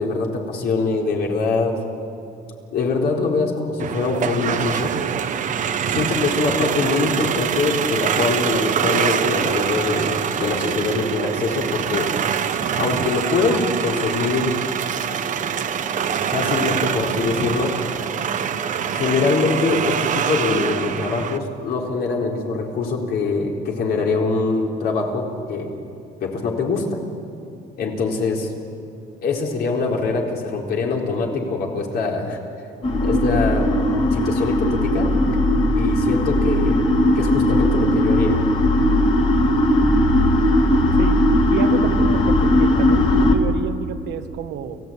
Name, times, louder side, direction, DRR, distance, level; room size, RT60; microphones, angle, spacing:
voice 1, 0.0-1.8 2.7-5.0 5.9-12.1 12.8-14.6 16.3-17.8 18.9-25.7 26.2-27.0 27.8-28.5 29.2-32.4 33.0-33.7 34.1-35.1 35.7-36.8 37.1-38.4, left 4 dB, 60° left, 0 dB, 4.1 m, -23 dB
sound 1, 3.8-21.4, right 8 dB, 45° right, 1.1 m, -24 dB
sound 2, 32.8-43.4, left 1 dB, 30° left, 2.5 m, -18 dB
voice 2, 41.5-44.8, right 7 dB, 70° right, 8 dB, 1.5 m, -29 dB
29.5 x 15.5 x 8.8 m, 2.5 s
cardioid pair, 135°, 18 cm